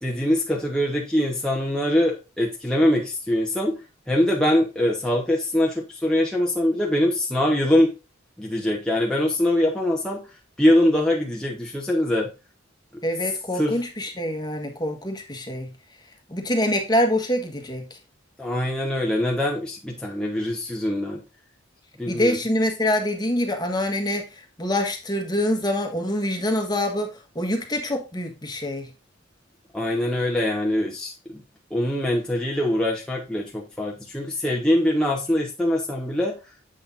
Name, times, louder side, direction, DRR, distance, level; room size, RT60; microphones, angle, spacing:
voice 1, 0.0-3.8 4.1-7.9 8.4-10.3 10.6-12.3 13.5-13.7 18.4-21.2 22.0-22.4 29.7-31.4 31.7-36.4, left 1 dB, 5° left, -3 dB, 1.1 m, -23 dB
voice 2, 13.0-15.7 16.3-18.0 22.1-28.9, left 1 dB, 20° left, 4 dB, 1.4 m, -25 dB
7.7 x 6.3 x 2.6 m, 0.28 s
head